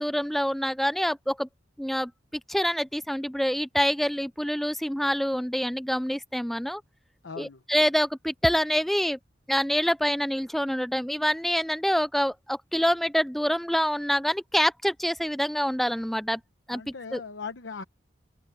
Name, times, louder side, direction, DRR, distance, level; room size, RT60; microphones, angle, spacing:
voice 1, 0.0-1.5 1.8-6.8 7.4-9.2 9.5-16.4 16.7-17.2, equal, ahead, 0.4 m, -26 dB
voice 2, 7.2-7.6 16.7-17.8, left 5 dB, 85° left, 1.0 m, -39 dB
head